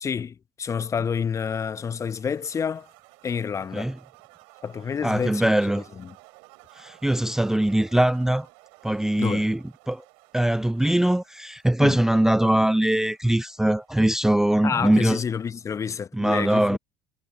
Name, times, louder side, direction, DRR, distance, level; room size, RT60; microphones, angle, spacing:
voice 1, 0.0-2.9 3.2-4.0 4.6-6.1 9.2-9.5 11.8-12.0 14.6-16.8, left 6 dB, 25° left, 1.0 m, -29 dB
sound 1, 1.5-15.9, right 37 dB, 60° right, 6.6 m, -55 dB
voice 2, 5.0-5.8 6.7-8.5 8.8-9.6 9.9-10.0 10.3-15.2 16.1-16.8, right 1 dB, 5° right, 0.6 m, -22 dB
figure-of-eight pair, 65°, 11 cm